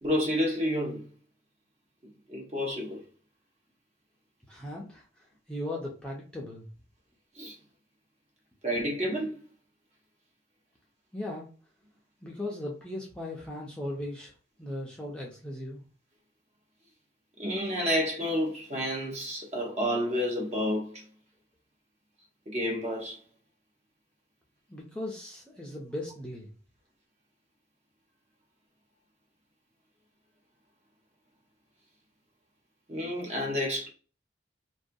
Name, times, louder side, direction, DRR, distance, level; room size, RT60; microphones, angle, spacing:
voice 1, 0.0-1.1 2.3-3.0 7.3-7.6 8.6-9.4 17.4-21.0 22.5-23.2 32.9-33.9, equal, 35° right, 0.8 m, -30 dB
voice 2, 4.5-6.7 11.1-11.5 12.2-14.3 14.6-15.8 24.7-26.5, left 1 dB, 5° left, 0.5 m, -38 dB
2.5 x 2.2 x 2.6 m
head